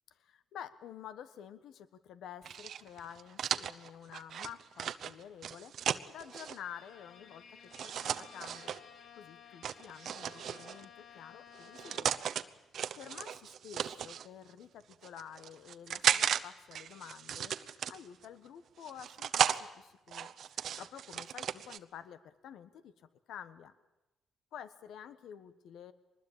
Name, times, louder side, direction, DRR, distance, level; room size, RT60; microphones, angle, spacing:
voice 1, 0.2-8.8 9.1-12.2 13.0-23.7 24.5-25.9, left 9 dB, 80° left, 13 dB, 1.3 m, -50 dB
sound 1, 2.4-6.6 7.7-8.8 9.6-10.8 11.6-12.4 12.7-14.3 14.9-16.4 16.7-18.2 18.8-19.6 20.1-21.8, right 9 dB, 65° right, 0.9 m, -35 dB
Bowed string instrument, 6.3-12.4, left 8 dB, 60° left, 1.7 m, -56 dB
23.0 x 20.5 x 8.8 m, 0.97 s
cardioid pair, 90°, 0 cm